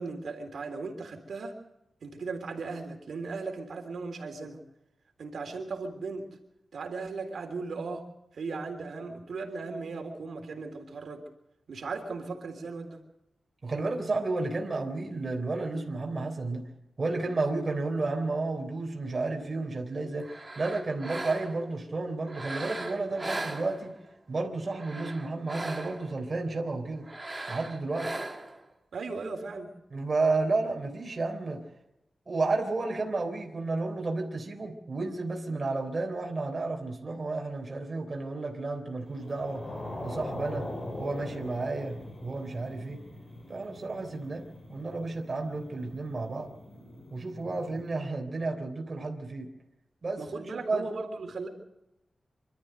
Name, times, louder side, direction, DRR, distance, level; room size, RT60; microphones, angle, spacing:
voice 1, 0.0-1.5 2.0-4.6 5.2-6.3 6.7-8.1 8.3-11.2 11.7-13.0 28.9-29.7 50.2-51.5, right 4 dB, 70° right, 3 dB, 3.5 m, -37 dB
voice 2, 13.6-16.7 17.0-23.9 24.3-27.1 27.5-28.1 29.9-31.6 32.3-39.6 40.0-40.7 41.0-43.0 43.5-44.4 44.7-46.5 47.1-49.5 50.0-50.8, right 3 dB, 35° right, 1 dB, 3.5 m, -32 dB
sound 1, 20.2-21.7 22.2-24.1 24.7-26.2 27.0-28.6, right 2 dB, 15° right, 2.4 m, -38 dB
sound 2, 39.1-47.9, left 1 dB, 30° left, 5.2 m, -42 dB
26.0 x 13.0 x 8.0 m, 0.88 s
wide cardioid pair, 160°, 0 cm